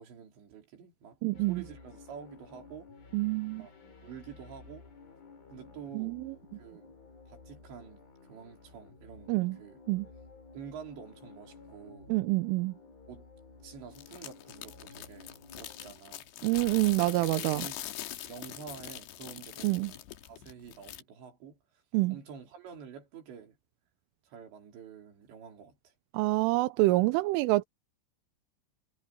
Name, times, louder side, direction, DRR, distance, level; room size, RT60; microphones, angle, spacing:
voice 1, 0.0-1.2 1.5-2.9 3.6-3.7 4.0-4.9 5.5-6.2 6.6-6.9 7.3-9.8 10.5-12.1 13.1-13.3 13.6-16.2 17.4-17.8 18.3-21.6 22.1-23.6 24.3-25.9, right 7 dB, 60° right, 5.9 m, -48 dB
voice 2, 1.2-1.6 3.1-3.6 6.0-6.2 9.3-9.6 9.9-10.1 12.1-12.7 16.4-17.6 19.6-19.9 21.9-22.2 26.1-27.6, right 20 dB, 85° right, 3.2 m, -27 dB
sound 1, 1.3-15.9, left 4 dB, 45° left, 8.2 m, -53 dB
sound 2, 14.0-21.0, left 13 dB, 70° left, 3.1 m, -43 dB
omnidirectional pair, 5.9 m